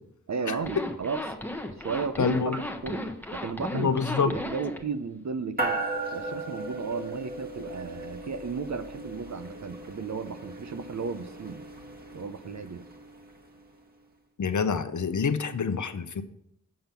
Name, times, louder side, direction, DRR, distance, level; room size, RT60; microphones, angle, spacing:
voice 1, 0.3-1.3 1.8-5.8 6.1-11.6 12.1-12.9, right 5 dB, 60° right, 11 dB, 0.7 m, -34 dB
Zipper (clothing), 0.6-4.8, left 1 dB, 5° left, 0.9 m, -35 dB
voice 2, 2.2-2.6 3.7-4.3 14.4-16.2, left 5 dB, 65° left, 10 dB, 0.7 m, -26 dB
sound 1, 5.6-13.3, right 2 dB, 30° right, 1.3 m, -37 dB
7.7 x 5.2 x 5.8 m, 0.74 s
wide cardioid pair, 80°, 32 cm